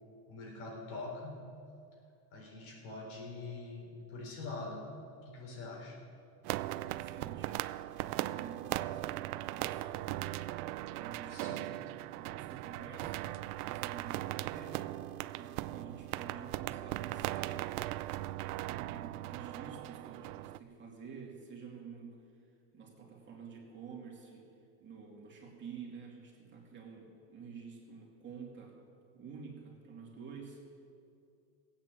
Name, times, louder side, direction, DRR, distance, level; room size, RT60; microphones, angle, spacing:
voice 1, 0.3-1.4 2.3-4.9 5.3-6.0 11.3-11.7, left 3 dB, 75° left, -1 dB, 4.3 m, -44 dB
sound 1, 6.4-20.6, right 16 dB, 80° right, 0.6 m, -39 dB
voice 2, 6.9-9.9 10.9-11.6 12.1-13.3 13.6-14.8 15.3-17.8 18.7-22.2 22.7-24.5 24.8-28.8 29.1-30.6, right 6 dB, 25° right, -1 dB, 2.7 m, -49 dB
16.0 x 8.8 x 7.7 m, 2.4 s
supercardioid pair, 140°, 43 cm